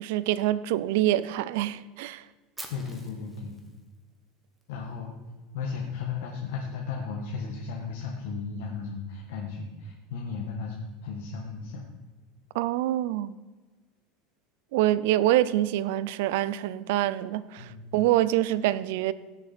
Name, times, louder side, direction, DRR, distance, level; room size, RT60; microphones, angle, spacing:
voice 1, 0.0-2.2 12.5-13.4 14.7-19.1, right 14 dB, 65° right, 0.5 m, -25 dB
Fire, 2.6-4.6, right 2 dB, 5° right, 1.1 m, -46 dB
voice 2, 2.7-3.6 4.7-5.1 5.5-11.8 17.6-17.9, left 5 dB, 80° left, 1.5 m, -35 dB
16.5 x 6.7 x 4.3 m
cardioid pair, 170°, 0 cm